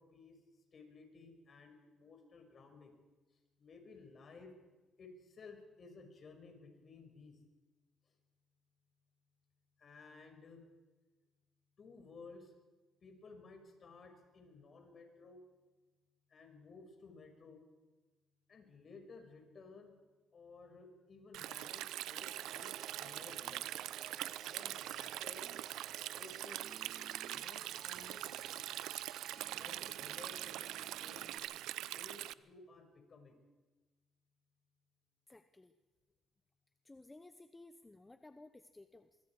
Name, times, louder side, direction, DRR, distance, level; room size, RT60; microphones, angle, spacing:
voice 1, 0.0-2.9 3.3-4.6 5.0-7.4 8.1-8.2 9.8-10.6 11.8-12.5 13.0-15.5 16.3-17.6 18.5-20.0 20.3-23.6 24.5-25.6 26.1-26.6 27.3-28.7 29.6-31.5 31.9-33.4, left 4 dB, 45° left, 4 dB, 5.8 m, -56 dB
Stream, 21.3-32.3, right 14 dB, 85° right, 0.5 m, -43 dB
sound 1, 22.2-31.4, right 5 dB, 45° right, 3.0 m, -56 dB
voice 2, 35.3-35.7 36.8-39.2, left 2 dB, 15° left, 10 dB, 0.9 m, -57 dB
24.5 x 23.5 x 4.9 m, 1.3 s
cardioid pair, 90°, 0 cm